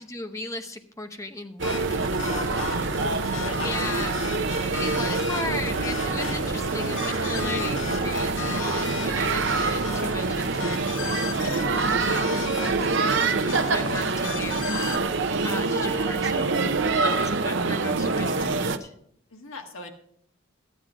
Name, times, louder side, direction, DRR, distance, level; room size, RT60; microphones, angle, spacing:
voice 1, 0.0-4.2 4.5-12.9 13.1-18.9, left 2 dB, 15° left, 7 dB, 0.8 m, -37 dB
sound 1, 1.6-15.0, left 5 dB, 65° left, 0.9 m, -36 dB
sound 2, 1.6-18.8, right 3 dB, 60° right, 0.7 m, -26 dB
voice 2, 2.3-3.1 3.4-4.2 6.2-6.4 7.7-7.9 15.4-15.6 19.3-19.9, left 2 dB, 85° left, 3 dB, 1.8 m, -39 dB
13.0 x 9.1 x 5.0 m, 0.67 s
head